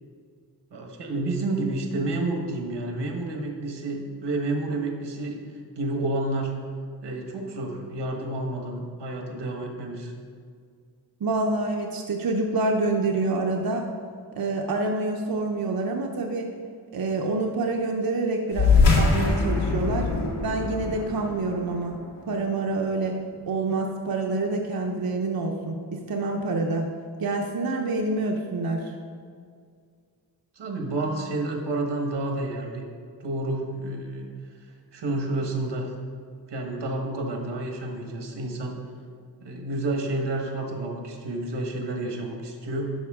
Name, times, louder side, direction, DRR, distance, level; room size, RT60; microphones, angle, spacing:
voice 1, 0.7-5.4 5.8-6.5 7.0-10.1 30.6-32.8 33.2-34.3 34.9-35.9 36.5-38.8 39.4-42.9, right 2 dB, 90° right, 2 dB, 1.3 m, -30 dB
voice 2, 11.2-13.9 14.3-16.5 16.9-20.1 20.4-22.0 22.3-26.9 27.2-28.9, right 3 dB, 60° right, 1 dB, 0.7 m, -27 dB
sound 1, 18.5-23.4, left 4 dB, 85° left, 1.9 m, -23 dB
11.5 x 5.6 x 3.6 m, 2.1 s
wide cardioid pair, 135°, 40 cm